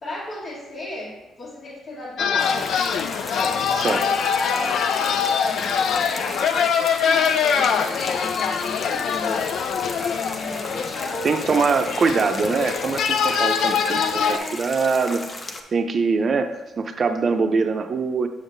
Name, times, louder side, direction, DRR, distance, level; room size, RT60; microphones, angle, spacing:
voice 1, 0.0-2.8 3.1-4.2 4.5-9.5 10.0-12.4 14.1-14.7, left 1 dB, 55° left, -7 dB, 1.6 m, -35 dB
sound 1, 2.2-14.4, left 7 dB, 70° left, 0.4 m, -23 dB
sound 2, 2.4-15.6, left 2 dB, 35° left, 0.7 m, -36 dB
voice 2, 11.2-18.3, right 4 dB, 45° right, 8 dB, 0.6 m, -23 dB
7.1 x 6.2 x 2.6 m, 1.1 s
cardioid pair, 90°, 0 cm